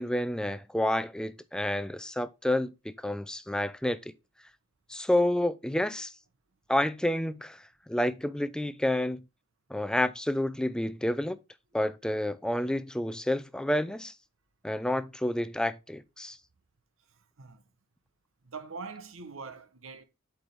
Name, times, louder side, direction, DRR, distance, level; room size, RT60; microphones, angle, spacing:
voice 1, 0.0-4.0 4.9-6.1 6.7-7.6 7.9-9.2 9.7-11.4 11.7-14.1 14.6-16.4, left 1 dB, 5° left, 0.4 m, -29 dB
voice 2, 17.1-17.6 18.4-20.0, right 4 dB, 80° right, 0.9 m, -43 dB
7.8 x 4.7 x 3.4 m
head